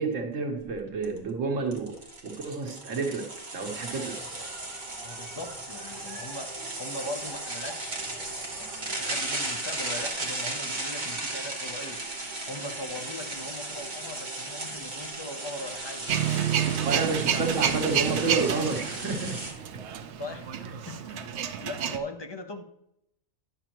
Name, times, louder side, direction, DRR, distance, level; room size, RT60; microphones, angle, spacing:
voice 1, 0.0-2.0 2.2-4.2 16.8-19.4 19.7-19.8, right 4 dB, 85° right, 3 dB, 1.4 m, -30 dB
sound 1, 0.6-0.7 1.0-1.2 1.7-19.5, right 2 dB, 40° right, 1.2 m, -36 dB
sound 2, 3.6-10.1, right 1 dB, ahead, 2.8 m, -49 dB
voice 2, 5.0-6.5 6.8-8.1 8.6-12.0 12.5-17.7 20.2-22.6, left 1 dB, 30° left, 5 dB, 0.6 m, -40 dB
Male speech man speaking / Vehicle / Engine starting, 16.1-22.0, right 9 dB, 70° right, 0.9 m, -29 dB
10.0 x 6.7 x 3.0 m, 0.80 s
omnidirectional pair, 1.3 m